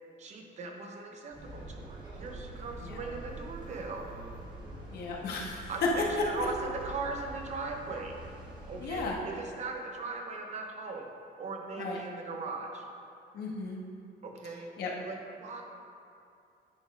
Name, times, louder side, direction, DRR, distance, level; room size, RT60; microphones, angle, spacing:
voice 1, 0.2-4.1 5.7-8.2 8.7-11.1 11.4-12.8 14.2-14.7 15.0-15.6, right 3 dB, 40° right, 2 dB, 0.9 m, -39 dB
sound 1, 1.3-9.1, right 2 dB, 25° right, 1.4 m, -45 dB
voice 2, 4.9-5.7 8.8-9.2 11.8-12.0 13.3-13.8 14.8-14.9, left 4 dB, 65° left, -2 dB, 1.4 m, -36 dB
9.5 x 4.4 x 5.2 m, 2.5 s
cardioid pair, 170°, 18 cm